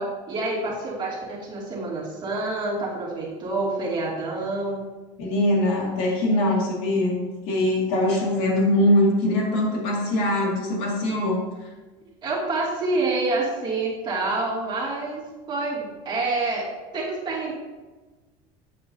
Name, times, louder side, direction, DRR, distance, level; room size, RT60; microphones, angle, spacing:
voice 1, 0.0-4.9 12.2-16.7 16.9-17.5, right 2 dB, 30° right, -5 dB, 2.2 m, -27 dB
voice 2, 5.2-11.4, left 1 dB, 70° left, -2 dB, 2.1 m, -22 dB
8.0 x 6.6 x 2.7 m, 1.2 s
cardioid pair, 140°, 15 cm